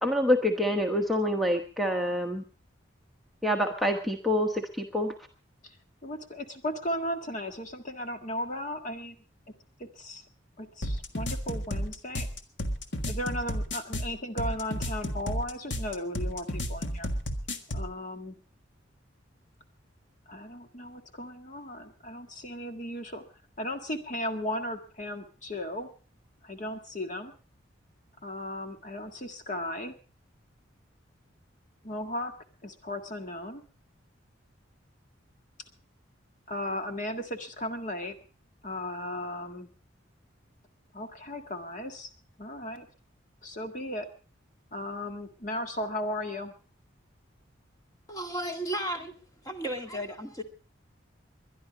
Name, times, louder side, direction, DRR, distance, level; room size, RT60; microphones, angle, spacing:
voice 1, 0.0-2.4 3.4-5.1, left 1 dB, ahead, 1.1 m, -26 dB
voice 2, 6.0-9.2 9.8-10.2 10.6-12.3 13.1-17.1 17.7-18.4 20.3-23.2 23.6-25.9 26.4-27.3 28.2-29.9 31.8-32.3 32.6-33.6 36.5-38.1 38.6-39.7 40.9-42.1 42.4-42.9 43.4-44.1 44.7-46.5, left 1 dB, 40° left, 1.7 m, -36 dB
sound 1, 10.8-17.9, equal, 65° left, 1.6 m, -32 dB
voice 3, 48.1-49.1 49.4-50.4, right 1 dB, 20° left, 2.0 m, -34 dB
22.0 x 11.0 x 5.1 m
head